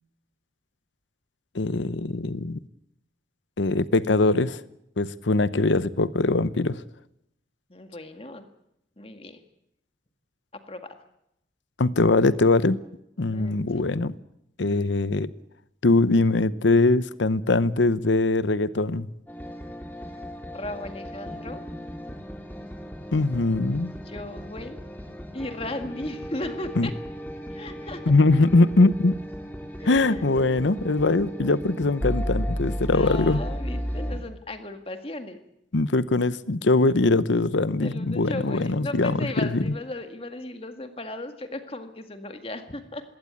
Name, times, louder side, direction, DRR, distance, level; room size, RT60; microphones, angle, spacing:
voice 1, 1.5-2.6 3.6-4.6 5.0-6.8 11.8-12.8 13.2-14.1 14.6-15.3 15.8-19.1 23.1-23.9 26.8-26.9 28.1-29.2 29.9-33.4 35.7-39.7, left 2 dB, 85° left, 0.8 m, -22 dB
voice 2, 7.7-8.5 9.0-9.4 10.5-11.0 13.3-13.7 20.5-21.7 24.0-24.8 25.3-26.9 27.5-28.1 29.8-30.3 32.9-35.4 37.8-43.0, left 2 dB, 30° left, 1.9 m, -36 dB
sound 1, 19.3-34.2, equal, 10° left, 3.7 m, -35 dB
21.0 x 17.0 x 9.6 m
head